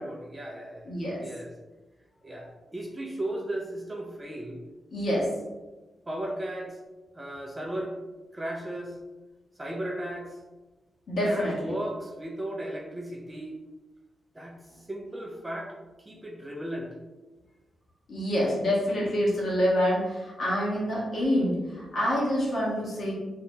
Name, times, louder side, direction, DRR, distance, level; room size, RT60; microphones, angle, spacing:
voice 1, 0.0-1.5 2.2-4.6 6.1-6.8 7.1-7.9 8.3-9.0 9.6-10.4 11.2-13.6 14.3-16.9, right 1 dB, 15° right, -1 dB, 0.4 m, -36 dB
voice 2, 0.9-1.2 4.9-5.3 11.1-11.7 18.1-23.1, equal, 55° left, -5 dB, 1.0 m, -26 dB
3.3 x 2.8 x 2.7 m, 1.2 s
wide cardioid pair, 160°, 0 cm